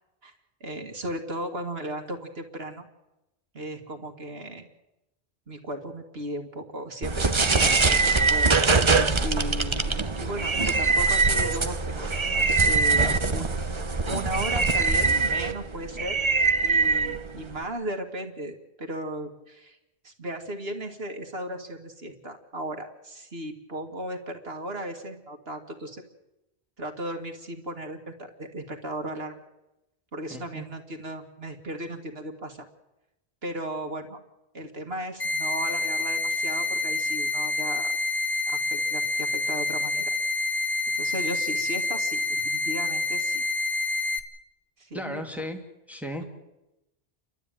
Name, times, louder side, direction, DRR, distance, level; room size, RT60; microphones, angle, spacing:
voice 1, 0.6-2.9 3.5-4.7 5.5-8.5 9.2-12.4 12.6-16.2 16.6-19.8 20.0-26.0 26.8-29.3 30.1-32.7 33.4-34.2 34.5-37.9 38.5-40.1 41.0-43.4 44.8-45.2 46.2-46.3, right 1 dB, 65° right, 4 dB, 2.1 m, -36 dB
sound 1, 7.0-17.6, right 4 dB, 30° right, 0.9 m, -23 dB
voice 2, 30.3-30.7 44.9-45.6 45.9-46.2, left 1 dB, ahead, 3 dB, 2.4 m, -35 dB
sound 2, 35.2-44.2, left 3 dB, 65° left, 2.3 m, -27 dB
29.5 x 12.5 x 9.0 m, 0.96 s
omnidirectional pair, 1.1 m